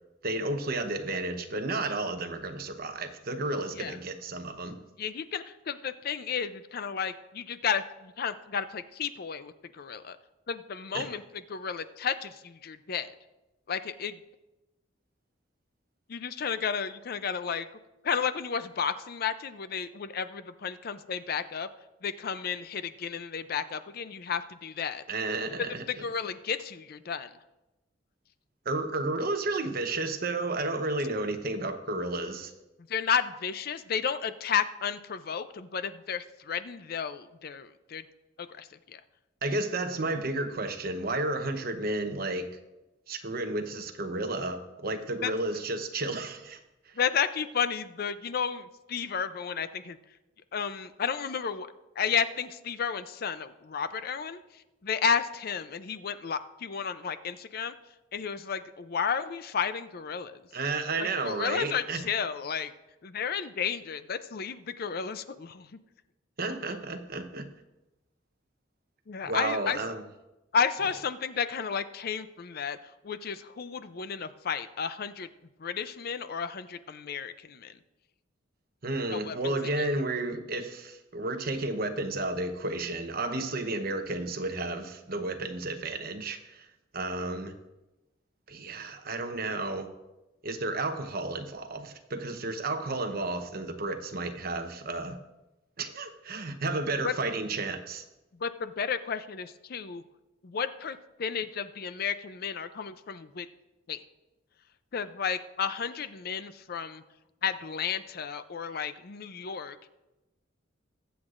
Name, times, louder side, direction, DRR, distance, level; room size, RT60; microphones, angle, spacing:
voice 1, 0.2-4.7 10.9-11.1 25.1-25.8 28.6-32.5 39.4-42.5 43.1-46.6 60.5-62.0 66.4-67.4 69.3-70.0 78.8-86.7 86.9-87.5 88.5-89.9 90.4-95.2 95.8-98.0, right 2 dB, 50° right, 7 dB, 0.9 m, -32 dB
voice 2, 5.0-10.2 10.5-11.2 11.5-13.1 13.7-14.2 16.1-17.7 18.0-21.7 22.0-25.0 25.9-27.3 32.9-38.0 38.4-39.0 45.2-45.3 47.0-50.0 50.5-51.7 52.0-57.7 58.1-60.4 61.0-62.7 63.0-65.7 69.1-69.8 70.5-72.8 73.0-75.3 75.6-77.8 79.1-79.9 97.0-97.1 98.4-100.0 100.4-103.5 103.9-104.0 104.9-107.0 107.4-109.9, left 6 dB, 50° left, 12 dB, 0.5 m, -32 dB
21.5 x 8.0 x 2.5 m, 1.0 s
head